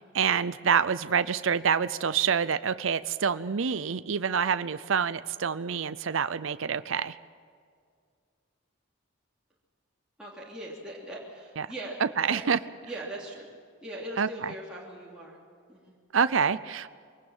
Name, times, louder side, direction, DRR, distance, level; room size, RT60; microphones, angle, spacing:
voice 1, 0.0-7.2 11.6-11.7 12.2-12.6 14.2-14.5 16.1-16.9, right 6 dB, 75° right, 14 dB, 0.6 m, -27 dB
voice 2, 10.2-12.0 12.3-12.4 12.8-13.5 13.8-15.4 15.7-15.9, right 1 dB, 5° right, -7 dB, 3.1 m, -40 dB
24.0 x 18.5 x 7.3 m, 2.1 s
head